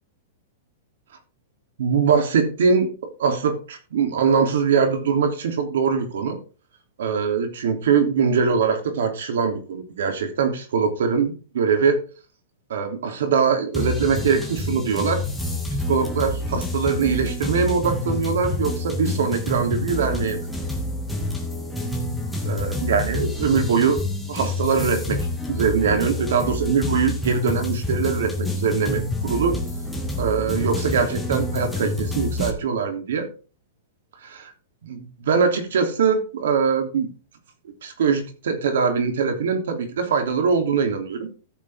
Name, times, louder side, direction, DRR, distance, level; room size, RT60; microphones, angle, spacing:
voice 1, 1.8-2.9 3.2-6.4 7.0-12.0 12.7-15.2 15.9-20.5 22.4-24.0 24.3-25.2 25.5-29.6 30.2-33.3 34.2-34.5 34.8-37.1 37.8-41.3, right 6 dB, 80° right, 5 dB, 3.3 m, -22 dB
sound 1, 13.7-32.5, left 2 dB, ahead, 2.1 m, -28 dB
14.5 x 7.1 x 3.7 m, 0.36 s
supercardioid pair, 155°, 0 cm